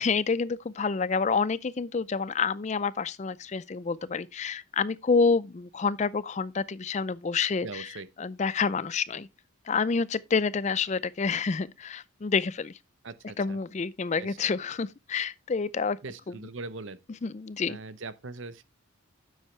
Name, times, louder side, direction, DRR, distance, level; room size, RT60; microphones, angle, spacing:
voice 1, 0.0-7.9 8.2-9.3 9.7-12.7 13.4-16.0 16.3-16.4 17.2-17.8, left 5 dB, 35° left, 0.4 m, -28 dB
voice 2, 7.6-8.1 13.0-13.6 14.2-14.4 16.0-17.0 17.7-18.6, right 3 dB, 65° right, 0.8 m, -40 dB
10.0 x 7.5 x 3.2 m
head